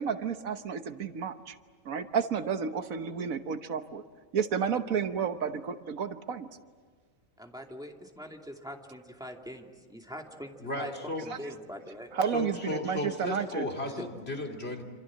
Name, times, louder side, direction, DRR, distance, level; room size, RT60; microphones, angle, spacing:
voice 1, 0.0-1.5 1.8-4.0 4.3-6.5 12.1-13.7, right 6 dB, 90° right, 9 dB, 1.6 m, -31 dB
voice 2, 7.4-10.9 11.2-12.1 13.8-13.9, equal, 5° right, 2 dB, 2.4 m, -43 dB
voice 3, 10.6-11.3 12.3-14.8, left 2 dB, 50° left, 2 dB, 3.1 m, -35 dB
27.0 x 27.0 x 7.6 m, 1.5 s
omnidirectional pair, 1.4 m